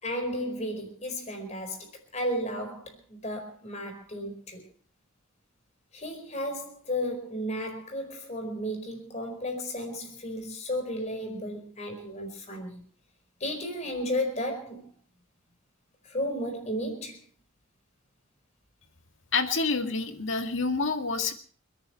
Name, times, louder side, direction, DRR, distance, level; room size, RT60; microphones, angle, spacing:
voice 1, 0.0-4.6 5.9-12.8 13.4-14.9 16.0-17.2, equal, 35° left, 4 dB, 4.8 m, -33 dB
voice 2, 19.3-21.3, left 4 dB, 65° left, 6 dB, 2.0 m, -28 dB
30.0 x 10.5 x 4.4 m, 0.43 s
head